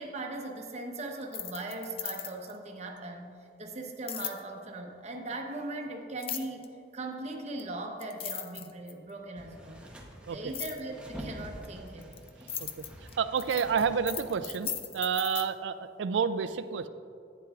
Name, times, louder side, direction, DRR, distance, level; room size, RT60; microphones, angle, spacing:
voice 1, 0.0-9.9 10.3-12.1, right 2 dB, 40° right, 2 dB, 0.8 m, -39 dB
sound 1, 1.2-2.6 4.1-4.4 6.2-6.7 7.6-7.7 8.0-9.1 10.5-10.8 11.6-15.5, left 9 dB, 30° left, 0.4 m, -37 dB
sound 2, 9.4-14.8, equal, 5° right, 0.8 m, -47 dB
voice 2, 12.6-16.9, right 6 dB, 80° right, 13 dB, 0.4 m, -30 dB
11.0 x 9.2 x 2.4 m, 2.4 s
head